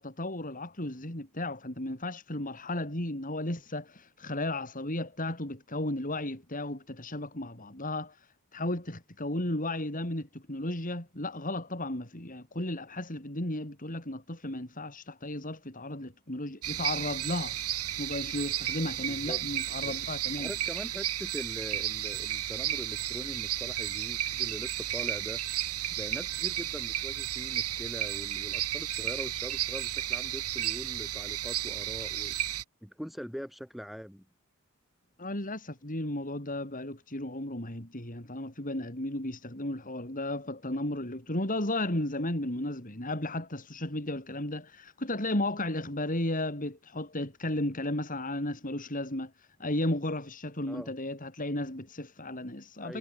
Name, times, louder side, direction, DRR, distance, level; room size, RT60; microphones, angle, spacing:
voice 1, 0.0-17.6 18.0-20.5 35.2-53.0, left 1 dB, 40° left, 4.8 m, -34 dB
sound 1, 16.6-32.6, right 12 dB, 85° right, 2.1 m, -33 dB
voice 2, 19.0-19.4 19.7-20.0 20.4-25.4 25.9-32.3 32.8-34.2 50.7-50.9 52.8-53.0, equal, ahead, 6.0 m, -42 dB
head